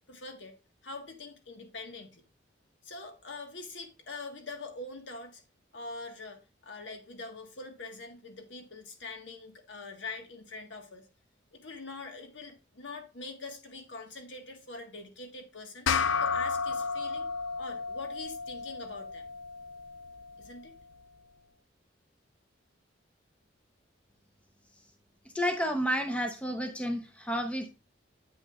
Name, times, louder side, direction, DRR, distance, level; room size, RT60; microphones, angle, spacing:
voice 1, 0.1-0.6 0.8-2.2 2.8-5.4 5.7-11.1 11.5-17.3 17.6-19.3 20.4-20.7, left 3 dB, 70° left, 1.5 m, -44 dB
sound 1, 15.9-20.6, left 5 dB, 90° left, 0.5 m, -33 dB
voice 2, 25.3-27.8, equal, 5° left, 0.7 m, -31 dB
9.0 x 7.9 x 2.4 m
head